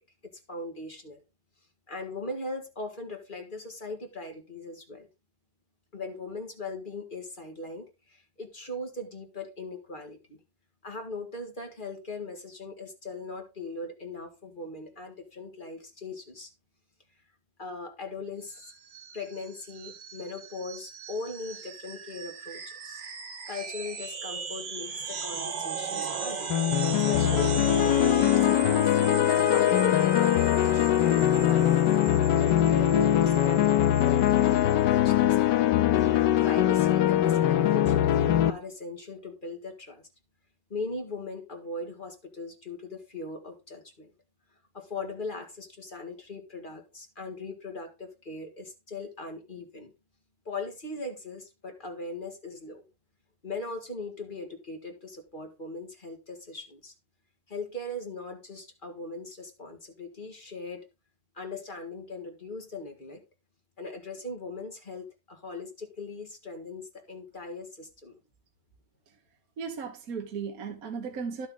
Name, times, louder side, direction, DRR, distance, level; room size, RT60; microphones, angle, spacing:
voice 1, 0.5-1.2 1.9-5.1 5.9-10.4 10.8-16.5 17.6-18.7 19.1-23.0 23.5-26.5 27.1-28.9 29.5-35.6 36.4-40.0 40.7-44.1 44.7-49.9 50.5-52.8 53.4-56.9 57.5-60.9 61.3-63.2 63.8-68.2, left 3 dB, 30° left, 2.0 m, -39 dB
sound 1, 18.5-34.7, right 6 dB, 85° right, 2.2 m, -38 dB
sound 2, 26.5-38.5, left 11 dB, 80° left, 1.4 m, -22 dB
voice 2, 69.6-71.5, right 6 dB, 55° right, 1.7 m, -36 dB
11.5 x 7.3 x 3.8 m
omnidirectional pair, 1.9 m